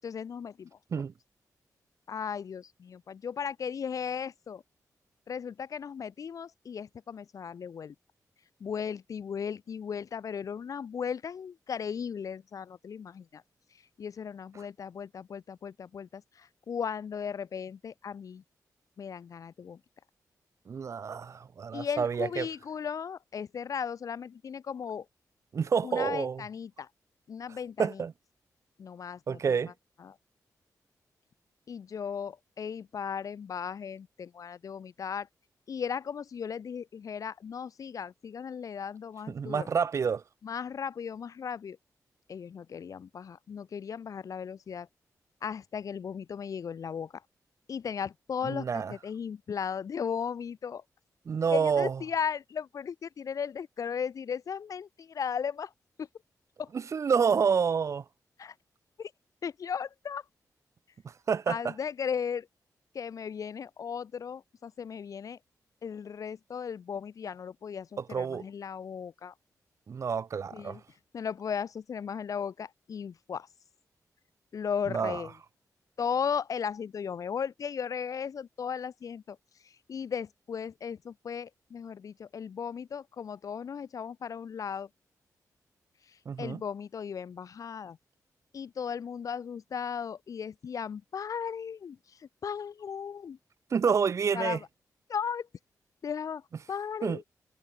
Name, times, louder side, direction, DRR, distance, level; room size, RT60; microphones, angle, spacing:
voice 1, 0.0-0.8 2.1-4.6 5.3-7.9 8.6-13.4 14.0-18.4 19.0-19.8 21.7-25.1 25.8-26.9 27.3-28.0 28.8-29.6 30.0-30.2 31.7-35.3 35.7-39.7 40.4-41.8 42.3-44.9 45.4-47.2 47.7-50.8 51.5-55.7 56.0-56.1 56.6-56.7 58.4-58.5 59.0-59.1 59.4-60.2 61.5-62.5 62.9-65.4 65.8-69.3 70.5-70.8 71.1-73.5 74.5-75.3 76.0-79.4 79.6-84.9 86.1-88.0 88.5-93.4 94.3-94.7 95.1-95.5 96.0-97.2, left 7 dB, 60° left, 7.6 m, -36 dB
voice 2, 20.7-22.5 25.5-26.4 27.8-28.1 29.3-29.7 39.3-40.2 48.4-48.9 51.2-52.0 56.7-58.0 61.0-61.7 68.0-68.5 69.9-70.8 74.9-75.2 86.2-86.6 93.7-94.6 97.0-97.2, right 6 dB, 50° right, 3.2 m, -28 dB
wide cardioid pair, 170°, 6 cm